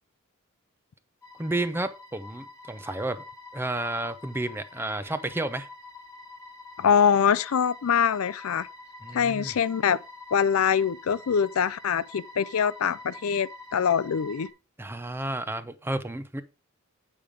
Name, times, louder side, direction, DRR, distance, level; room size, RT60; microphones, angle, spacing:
sound 1, 1.2-14.5, left 2 dB, 15° left, 1.6 m, -46 dB
voice 1, 1.4-3.3 3.5-5.7 9.0-9.5 14.8-16.4, right 2 dB, 10° right, 0.6 m, -31 dB
voice 2, 6.8-8.7 9.1-10.0 10.3-14.5, left 7 dB, 75° left, 0.4 m, -24 dB
8.8 x 5.2 x 4.9 m
head